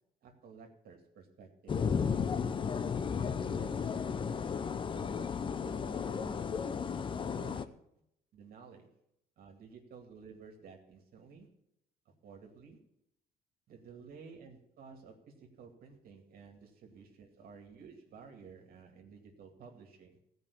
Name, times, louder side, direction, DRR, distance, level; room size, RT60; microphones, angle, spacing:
voice 1, 0.2-1.8 3.3-4.1 4.9-6.5 7.1-7.7 8.3-8.9 9.4-11.5 12.2-12.8 13.7-20.2, right 5 dB, 60° right, 2 dB, 2.4 m, -53 dB
sound 1, 1.7-7.7, left 6 dB, 30° left, 0.6 m, -34 dB
15.0 x 5.4 x 8.4 m, 0.79 s
cardioid pair, 110°, 17 cm